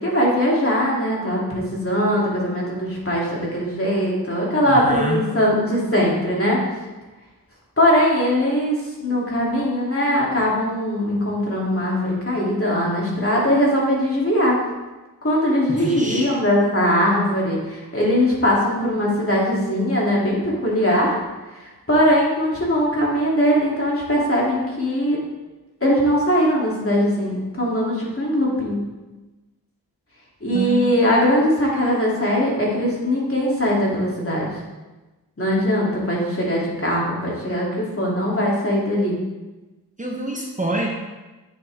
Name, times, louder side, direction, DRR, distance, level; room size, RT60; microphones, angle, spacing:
voice 1, 0.0-6.6 7.8-14.6 15.2-21.2 21.6-25.2 25.8-28.8 30.4-34.5 35.4-39.1, equal, 35° left, -4 dB, 2.9 m, -20 dB
voice 2, 4.7-5.2 15.7-16.3 30.5-31.0 40.0-40.9, right 1 dB, 20° right, -1 dB, 1.1 m, -26 dB
8.7 x 7.3 x 3.6 m, 1.1 s
wide cardioid pair, 60°, 38 cm